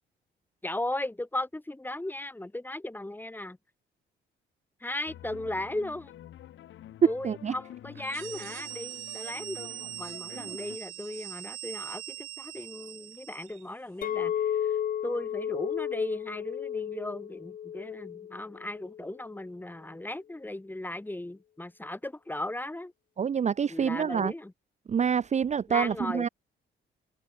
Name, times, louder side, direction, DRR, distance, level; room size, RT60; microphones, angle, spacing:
voice 1, 0.6-3.6 4.8-6.1 7.0-14.8 15.0-22.9 23.7-24.5 25.7-26.2, left 1 dB, 10° left, 2.4 m, -36 dB
sound 1, 5.1-10.8, left 12 dB, 75° left, 3.3 m, -48 dB
sound 2, 8.0-13.7, right 15 dB, 85° right, 5.0 m, -41 dB
Chink clink, 14.0-19.2, left 9 dB, 45° left, 0.5 m, -33 dB
voice 2, 23.2-24.3 24.9-26.3, right 7 dB, 35° right, 0.6 m, -27 dB
cardioid pair, 90°, 20 cm